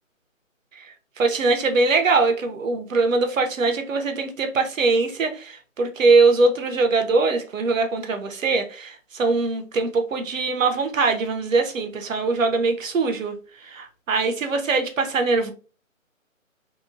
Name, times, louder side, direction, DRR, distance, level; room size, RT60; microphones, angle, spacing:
voice 1, 0.8-13.3 13.6-15.5, right 3 dB, 70° right, 0.7 m, -22 dB
2.8 x 2.0 x 2.5 m
figure-of-eight pair, 165°, 41 cm